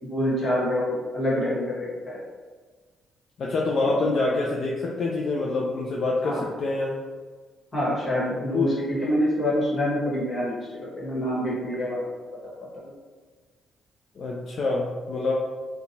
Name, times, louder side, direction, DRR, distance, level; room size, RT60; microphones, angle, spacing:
voice 1, 0.0-2.2 3.8-4.0 6.2-6.5 7.7-12.1 12.7-12.9, equal, 30° left, -6 dB, 1.3 m, -26 dB
voice 2, 3.4-6.9 8.5-8.7 14.2-15.3, left 3 dB, 55° left, -3 dB, 0.4 m, -26 dB
2.8 x 2.2 x 2.6 m, 1.4 s
cardioid pair, 90°, 0 cm